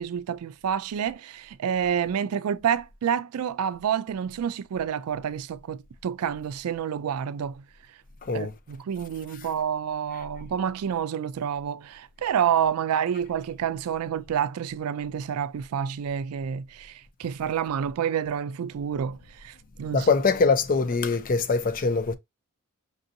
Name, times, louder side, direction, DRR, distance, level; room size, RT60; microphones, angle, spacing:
voice 1, 0.0-7.6 8.3-20.1, right 8 dB, 85° right, 0.3 m, -28 dB
voice 2, 19.9-22.1, left 4 dB, 40° left, 0.5 m, -23 dB
5.2 x 2.7 x 2.6 m
head